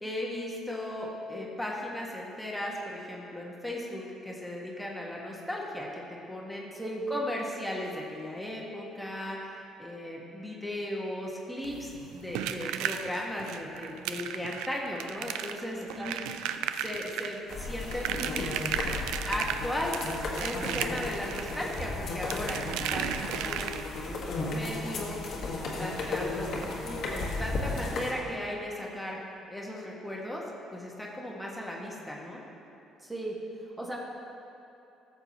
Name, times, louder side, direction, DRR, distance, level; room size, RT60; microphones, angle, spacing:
voice 1, 0.0-6.7 7.1-16.2 16.8-18.5 19.3-20.0 20.4-23.1 23.4-29.2 29.5-30.4 30.7-32.4, left 1 dB, 5° left, -3 dB, 1.6 m, -37 dB
voice 2, 6.7-7.0 16.0-16.1 33.0-34.0, right 1 dB, 20° right, -3 dB, 1.5 m, -37 dB
sound 1, 11.6-24.1 25.6-25.7 26.0-26.1 26.5-26.6, right 9 dB, 80° right, 0.3 m, -35 dB
sound 2, 17.5-28.1, left 2 dB, 65° left, 1.6 m, -34 dB
13.5 x 6.9 x 3.0 m, 2.7 s
supercardioid pair, 60°, 0 cm